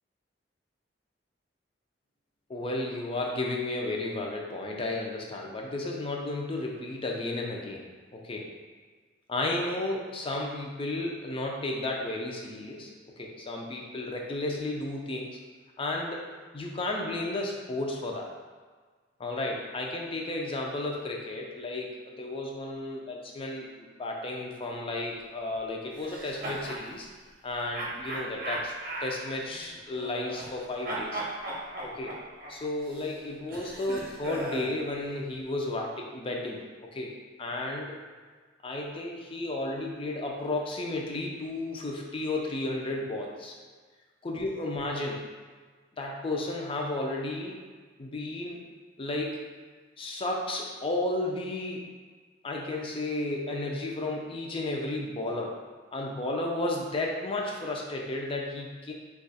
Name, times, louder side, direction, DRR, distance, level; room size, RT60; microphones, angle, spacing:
voice 1, 2.5-7.8 8.1-8.5 9.3-12.9 13.2-15.3 15.8-16.2 16.5-18.3 19.2-27.1 27.4-28.7 29.0-31.2 31.8-32.2 32.5-36.6 36.9-37.1 37.4-38.0 38.6-43.6 44.2-45.3 46.0-47.6 48.0-48.6 49.0-49.4 50.0-51.8 52.4-55.6 55.9-58.9, left 2 dB, 30° left, 0 dB, 0.5 m, -33 dB
sound 1, 26.0-26.8 27.7-30.6 30.8-34.8, right 1 dB, 50° right, 0.7 m, -37 dB
2.9 x 2.4 x 4.1 m, 1.5 s
head